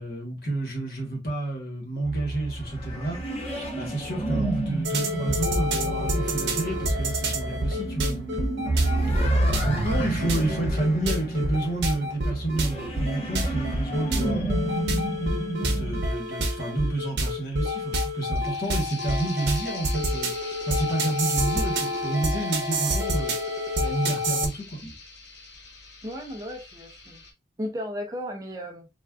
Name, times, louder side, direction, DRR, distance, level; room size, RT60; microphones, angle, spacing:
voice 1, 0.0-3.2 3.5-8.7 9.6-14.7 15.6-24.9, right 2 dB, 55° left, 1.1 m, -30 dB
sound 1, 2.0-16.0, right 2 dB, 35° left, 1.0 m, -29 dB
shiz mtton, 4.8-24.5, equal, 80° right, 0.8 m, -28 dB
sound 2, 13.0-27.3, left 4 dB, 85° left, 0.9 m, -45 dB
voice 2, 26.0-27.2 27.6-28.9, equal, 20° right, 0.5 m, -35 dB
3.5 x 2.4 x 2.3 m
head